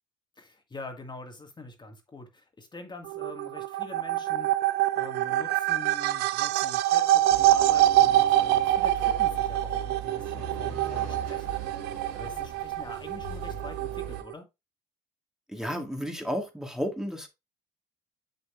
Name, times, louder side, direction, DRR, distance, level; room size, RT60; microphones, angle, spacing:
voice 1, 0.4-4.5 4.9-11.6 12.1-14.5, left 3 dB, 25° left, 1.8 m, -45 dB
sound 1, 3.1-14.3, right 14 dB, 65° right, 0.5 m, -25 dB
sound 2, 7.3-14.2, right 6 dB, 85° right, 3.1 m, -39 dB
voice 2, 15.5-17.3, equal, 5° right, 1.9 m, -32 dB
7.6 x 6.7 x 2.5 m
hypercardioid pair, 65°, 18 cm